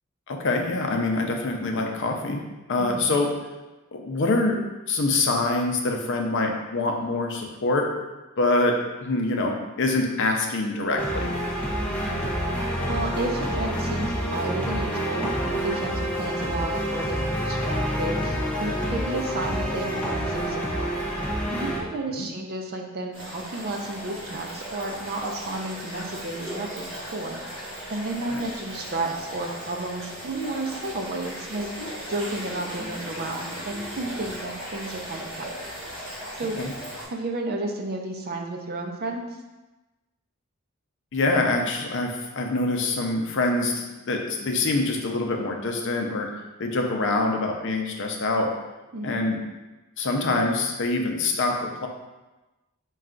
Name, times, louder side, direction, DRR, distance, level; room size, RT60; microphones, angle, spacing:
voice 1, 0.3-2.4 2.7-3.3 3.9-4.6 4.9-7.9 8.4-11.3 22.1-22.3 28.3-28.4 36.6-36.7 41.1-46.3 46.6-48.5 49.0-49.4 50.0-51.9, left 2 dB, 60° left, 2 dB, 0.5 m, -25 dB
voice 2, 2.8-3.1 12.1-12.3 12.9-20.9 21.5-27.4 27.9-35.4 36.4-36.6 37.1-39.3 48.9-49.2, right 2 dB, 45° right, 2 dB, 0.5 m, -32 dB
sound 1, 11.0-21.8, equal, 5° left, 0.5 m, -27 dB
sound 2, 23.1-37.0, equal, 25° right, 1.1 m, -37 dB
4.2 x 2.3 x 3.7 m, 1.1 s
head